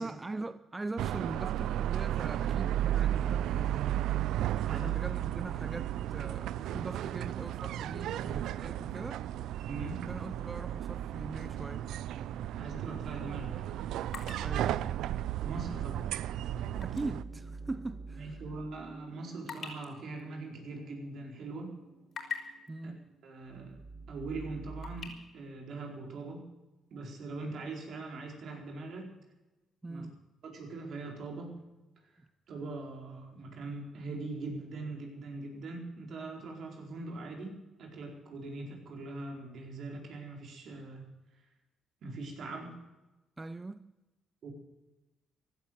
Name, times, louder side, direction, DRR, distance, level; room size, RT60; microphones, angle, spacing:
voice 1, 0.0-3.8 4.6-9.3 10.1-11.9 14.4-14.8 16.8-18.4 22.7-23.1 29.8-30.2 43.4-43.9, right 2 dB, 20° right, 0.6 m, -41 dB
sound 1, 1.0-17.2, right 12 dB, 85° right, 0.5 m, -34 dB
voice 2, 9.6-10.0 12.6-13.7 15.4-16.1 18.2-21.7 22.8-22.9 23.2-23.8 24.1-26.4 26.9-29.1 29.9-30.1 30.4-31.6 32.5-41.1 41.3-41.4 42.0-42.7 44.4-44.5, right 3 dB, 65° right, 4.6 m, -42 dB
sound 2, 14.1-17.1 17.5-17.6 18.2-21.3 21.7-22.7 23.7-23.8 24.2-25.1, left 6 dB, 55° left, 4.3 m, -45 dB
sound 3, 15.9-25.1, right 3 dB, 50° right, 2.6 m, -50 dB
16.0 x 12.0 x 7.7 m
cardioid pair, 90°, 0 cm